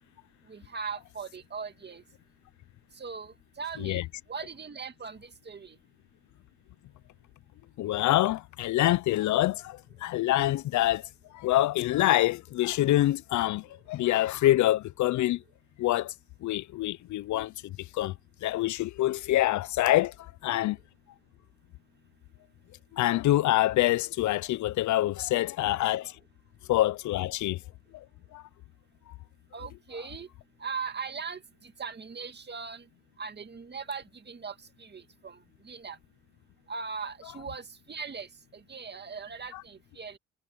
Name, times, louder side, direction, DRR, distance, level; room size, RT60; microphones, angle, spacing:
voice 1, 0.5-2.0 3.0-5.8 29.5-30.3 30.6-32.8 33.2-35.4 35.6-36.0 36.7-40.2, right 5 dB, 35° right, 2.2 m, -39 dB
voice 2, 7.8-11.1 11.3-15.4 15.8-16.1 16.4-18.1 18.4-20.8 22.9-26.1 26.7-27.6 27.9-28.0 28.3-28.4 39.5-39.6, left 15 dB, 70° left, 0.6 m, -26 dB
cardioid pair, 90°, 30 cm